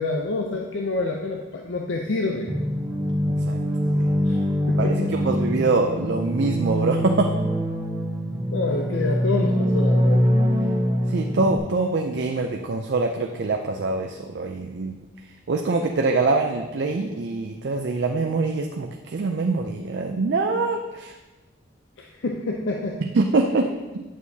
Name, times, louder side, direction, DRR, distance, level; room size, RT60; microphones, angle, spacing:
voice 1, 0.0-2.5 4.3-4.4 4.7-5.3 8.5-10.2 22.0-23.0, left 3 dB, 75° left, 1 dB, 0.5 m, -27 dB
sound 1, 2.5-11.6, equal, 15° right, 0.7 m, -23 dB
voice 2, 4.8-7.4 11.1-15.0 15.5-21.2 23.1-24.0, right 3 dB, 60° right, 3 dB, 0.4 m, -24 dB
9.2 x 6.4 x 2.8 m, 1.2 s
head